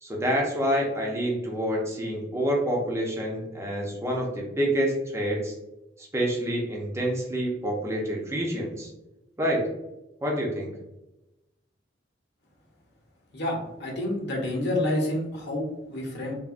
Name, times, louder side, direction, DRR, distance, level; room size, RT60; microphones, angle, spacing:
voice 1, 0.0-5.5 6.1-8.9 9.4-9.6 10.2-10.7, equal, 15° right, -2 dB, 0.5 m, -27 dB
voice 2, 13.3-16.4, left 1 dB, 60° left, 0 dB, 0.7 m, -29 dB
3.4 x 2.1 x 2.4 m, 0.95 s
head